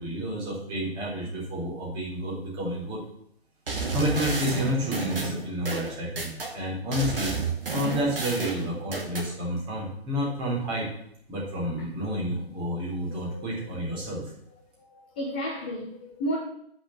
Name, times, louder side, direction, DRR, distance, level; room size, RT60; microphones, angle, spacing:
voice 1, 0.0-3.0 3.9-6.3 6.5-7.3 7.7-10.9 11.3-14.2, equal, 15° right, 3.6 m, -30 dB
sound 1, 3.7-6.5 6.9-9.3, right 4 dB, 60° right, 2.5 m, -31 dB
voice 2, 13.1-13.8 14.8-16.4, equal, 10° left, 0.5 m, -33 dB
8.2 x 6.6 x 7.6 m
figure-of-eight pair, 135°, 31 cm